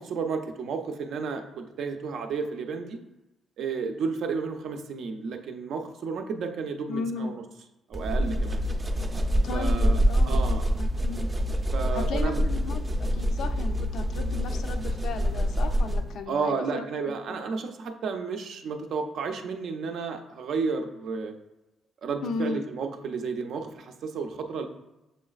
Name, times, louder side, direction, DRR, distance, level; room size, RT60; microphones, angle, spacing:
voice 1, 0.0-3.0 3.6-7.4 7.9-8.6 9.5-10.0 10.3-10.7 11.7-12.4 16.3-21.3 22.0-24.7, right 5 dB, 70° right, 5 dB, 0.5 m, -32 dB
voice 2, 6.9-7.3 9.4-10.4 10.8-11.3 11.9-17.4 22.2-22.6, left 4 dB, 75° left, 7 dB, 0.4 m, -35 dB
sound 1, 7.9-16.2, equal, 20° right, 0.5 m, -26 dB
6.8 x 3.1 x 2.4 m, 0.93 s
cardioid pair, 90°, 0 cm